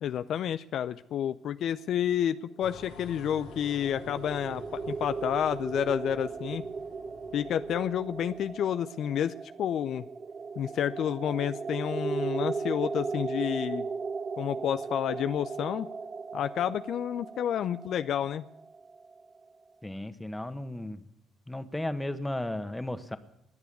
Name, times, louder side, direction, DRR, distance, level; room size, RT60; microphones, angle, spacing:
voice 1, 0.0-4.6 4.9-6.6 7.3-10.1 10.6-13.9 14.4-15.9 16.3-18.4, left 10 dB, 65° left, 12 dB, 0.5 m, -30 dB
sound 1, 2.6-8.6, left 4 dB, 85° left, 3.1 m, -50 dB
sound 2, 2.7-19.5, right 4 dB, 40° right, 1.2 m, -37 dB
voice 2, 19.8-21.0 21.5-23.2, left 1 dB, 10° left, 10 dB, 1.5 m, -34 dB
20.5 x 6.9 x 9.6 m, 0.82 s
hypercardioid pair, 55°, 0 cm